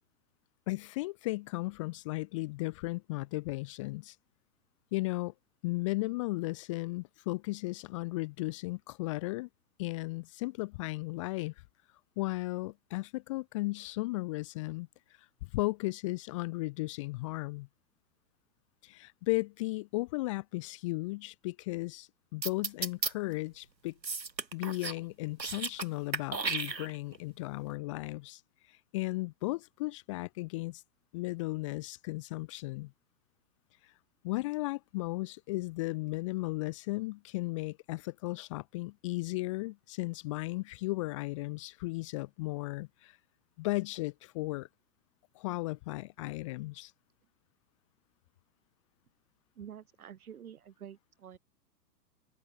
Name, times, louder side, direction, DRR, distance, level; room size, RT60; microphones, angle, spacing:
voice 1, 0.7-4.2 4.9-5.3 5.6-9.5 9.8-11.5 12.2-14.9 15.5-17.7 18.8-23.9 24.5-28.4 28.7-30.8 31.1-32.9 33.8-33.9 34.2-43.2 43.6-44.7 45.3-46.9, left 22 dB, 20° left, 0.6 m, -35 dB
sound 1, 22.4-23.1 24.0-25.0 25.3-25.9 26.1-27.2, right 4 dB, 85° right, 2.1 m, -34 dB
voice 2, 49.5-51.4, right 9 dB, 60° right, 3.2 m, -48 dB
open air
figure-of-eight pair, 110°, 50 cm